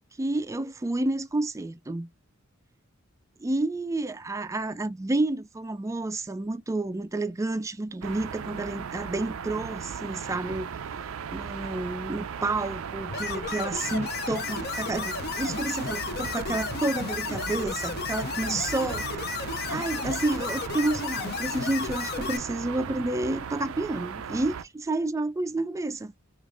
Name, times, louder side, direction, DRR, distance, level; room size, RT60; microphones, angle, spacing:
voice 1, 0.2-2.1 3.4-10.7 11.3-26.1, right 2 dB, 15° right, 0.3 m, -30 dB
sound 1, 8.0-24.6, right 7 dB, 80° right, 0.4 m, -37 dB
sound 2, 13.1-22.4, left 6 dB, 50° left, 0.6 m, -33 dB
4.7 x 2.5 x 2.4 m
head